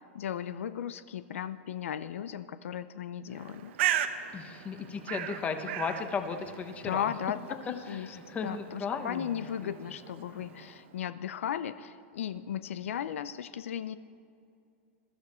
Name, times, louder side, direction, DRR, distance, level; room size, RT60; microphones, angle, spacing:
voice 1, 0.0-3.7 6.8-7.4 7.7-8.2 8.4-14.0, left 9 dB, 90° left, 13 dB, 0.6 m, -36 dB
Bird, 3.3-10.9, right 11 dB, 65° right, 0.9 m, -37 dB
voice 2, 4.3-7.1 7.8-9.7 10.5-10.6, left 5 dB, 20° left, 7 dB, 1.1 m, -36 dB
21.0 x 13.0 x 4.4 m, 2.4 s
supercardioid pair, 145°, 7 cm